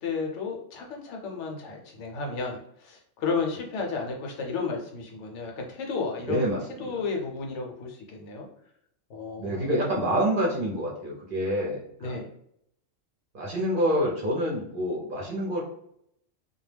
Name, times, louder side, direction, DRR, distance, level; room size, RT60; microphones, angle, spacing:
voice 1, 0.0-6.5 6.8-8.5 9.1-9.7 10.0-10.1 12.0-12.3, left 4 dB, 75° left, 1 dB, 0.9 m, -33 dB
voice 2, 6.3-7.0 9.4-12.2 13.3-15.6, equal, 50° right, -3 dB, 0.7 m, -27 dB
2.2 x 2.1 x 3.2 m, 0.71 s
omnidirectional pair, 1.3 m